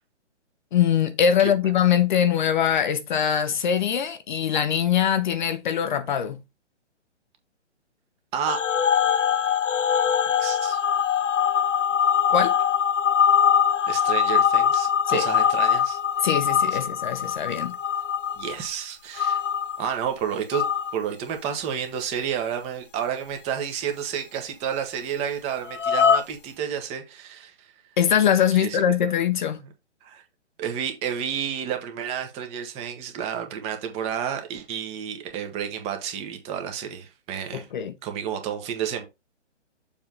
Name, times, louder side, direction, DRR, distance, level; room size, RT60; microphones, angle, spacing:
voice 1, 0.7-6.4 12.3-12.6 15.1-15.3 16.2-17.8 28.0-29.6 37.5-37.9, left 8 dB, 40° left, 0.7 m, -22 dB
sound 1, 8.5-18.7 19.2-19.9 20.5-20.9 25.7-26.2, left 8 dB, 85° left, 0.8 m, -22 dB
voice 2, 10.4-10.8 13.9-16.0 16.7-16.8 18.4-19.4 19.8-20.6 20.9-27.7 28.5-28.8 30.0-30.2 30.6-37.7 38.0-39.1, right 8 dB, 15° right, 1.0 m, -30 dB
7.1 x 3.4 x 5.3 m
hypercardioid pair, 145°, 36 cm